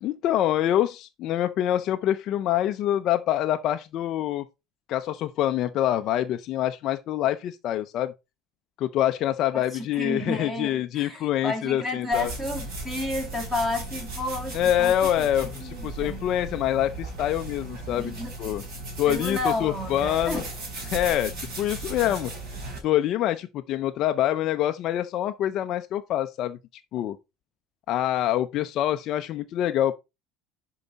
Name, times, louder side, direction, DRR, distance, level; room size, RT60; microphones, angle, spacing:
voice 1, 0.0-4.4 4.9-8.1 8.8-12.3 14.5-18.1 18.4-18.6 19.0-20.4 20.9-22.3 22.8-26.6 26.9-27.2 27.9-29.9, left 12 dB, 35° left, 0.5 m, -25 dB
voice 2, 9.5-15.3 15.6-16.2 17.9-18.3 19.1-20.4, left 2 dB, 5° right, 2.1 m, -31 dB
sound 1, 12.1-22.8, right 2 dB, 45° right, 4.0 m, -36 dB
11.0 x 4.7 x 4.0 m
cardioid pair, 180°, 0 cm